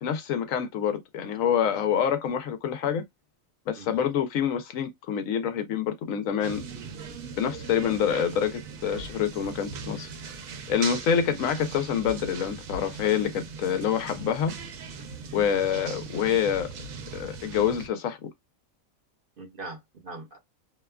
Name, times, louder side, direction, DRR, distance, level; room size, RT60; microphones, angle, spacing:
voice 1, 0.0-3.0 3.7-6.6 7.4-10.1 10.7-14.5 15.3-16.7 17.1-18.2, left 8 dB, 80° left, 1.0 m, -26 dB
voice 2, 3.7-4.1 11.2-11.5 19.4-20.4, right 3 dB, 50° right, 0.8 m, -42 dB
sound 1, 6.4-17.9, right 5 dB, 85° right, 1.1 m, -39 dB
2.8 x 2.2 x 2.2 m
omnidirectional pair, 1.4 m